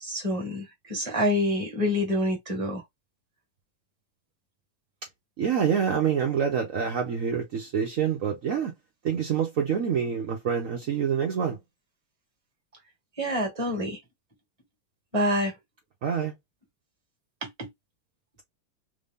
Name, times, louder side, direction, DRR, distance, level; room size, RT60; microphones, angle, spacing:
voice 1, 0.0-2.8 13.2-14.0 15.1-15.5 17.6-17.7, left 1 dB, 20° right, 1.1 m, -27 dB
voice 2, 5.4-8.7 9.0-11.6 16.0-16.3, right 7 dB, 65° right, 0.8 m, -26 dB
3.5 x 2.7 x 3.5 m
omnidirectional pair, 2.4 m